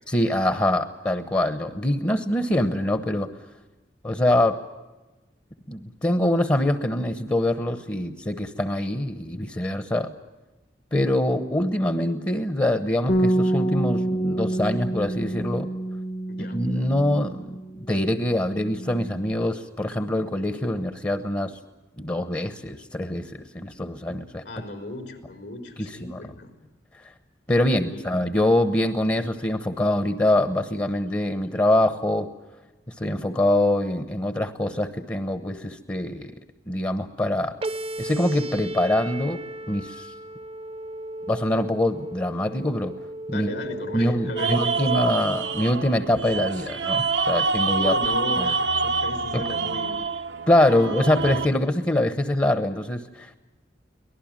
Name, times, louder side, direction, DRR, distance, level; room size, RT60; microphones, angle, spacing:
voice 1, 0.1-3.3 4.0-4.6 5.7-10.1 10.9-15.7 16.5-21.5 22.0-24.4 25.8-26.2 27.5-32.3 33.0-36.3 36.7-37.5 38.0-39.4 39.7-40.1 41.3-42.9 43.3-43.5 43.9-47.9 48.4-48.5 49.3-49.4 50.5-53.4, left 1 dB, 20° left, 8 dB, 1.0 m, -24 dB
Bass guitar, 13.1-17.8 18.0-19.3, right 1 dB, 45° left, 1.0 m, -27 dB
voice 2, 16.3-16.6 24.4-26.5 27.6-28.1 43.3-44.9 47.8-50.0, left 2 dB, 75° left, 4 dB, 4.1 m, -35 dB
sound 1, 37.6-45.6, right 1 dB, 35° right, 0.7 m, -35 dB
sound 2, 44.4-51.5, right 4 dB, 80° right, 0.9 m, -26 dB
24.0 x 18.5 x 9.0 m, 1.1 s
head